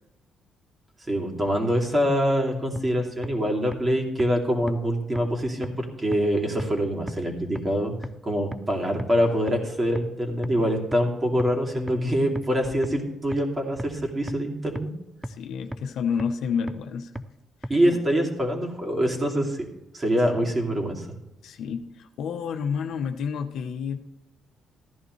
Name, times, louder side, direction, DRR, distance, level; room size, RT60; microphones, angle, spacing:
voice 1, 1.1-7.9 8.2-14.9 17.7-19.6 19.9-21.1, equal, 25° right, 0 dB, 2.6 m, -25 dB
sound 1, 2.8-2.9 3.2-3.3 3.7-3.8 4.2-4.3 4.7-4.8 5.2-5.3 5.6-5.7 6.1-6.2 6.6-6.7 7.1-7.2 7.6-7.7 8.0-8.1 8.5-8.6 9.0-9.1 9.5-9.6 10.0-10.1 10.4-10.5 10.9-11.0 11.4-11.5 11.9-12.0 12.4-12.5 12.8-12.9 13.3-13.4 13.8-13.9 14.3-14.4 14.8-14.9 15.2-15.3 15.7-15.8 16.2-16.3 16.7-16.8 17.2-17.3 17.6-17.7, equal, 5° right, 0.6 m, -32 dB
voice 2, 15.2-17.2 17.6-17.7 21.4-24.0, left 6 dB, 75° left, 7 dB, 0.9 m, -30 dB
14.5 x 11.0 x 3.2 m, 0.94 s
cardioid pair, 90°, 0 cm